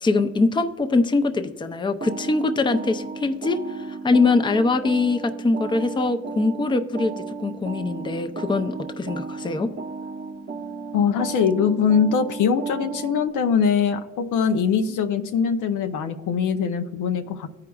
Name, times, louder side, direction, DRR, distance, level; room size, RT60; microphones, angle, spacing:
voice 1, 0.0-7.1 7.4-9.7, left 3 dB, 15° left, 8 dB, 0.5 m, -23 dB
sound 1, 2.0-13.3, right 5 dB, 40° right, 0.7 m, -35 dB
voice 2, 10.9-17.5, left 6 dB, 85° left, 6 dB, 0.7 m, -22 dB
14.5 x 4.9 x 2.3 m, 1.3 s
cardioid pair, 90°, 30 cm